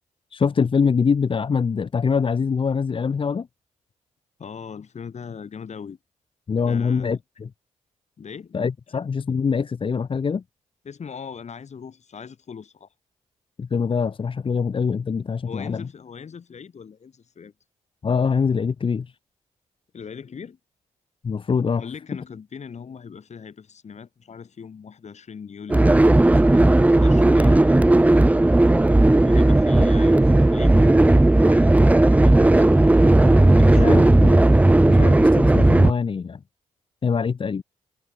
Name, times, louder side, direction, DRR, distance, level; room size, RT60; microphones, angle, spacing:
voice 1, 0.3-3.5 6.5-7.5 8.5-10.4 13.6-15.8 18.0-19.1 21.2-21.8 33.7-34.4 34.9-36.4 37.0-37.6, left 6 dB, 40° left, 0.7 m, -24 dB
voice 2, 4.4-6.0 6.6-7.2 8.2-8.6 8.9-9.0 10.8-12.9 15.5-17.5 19.9-20.6 21.6-27.8 29.2-32.7 33.4-34.1, left 6 dB, 55° left, 6.3 m, -40 dB
sound 1, 25.7-35.9, right 2 dB, 10° right, 0.5 m, -15 dB
supercardioid pair, 55°, 13 cm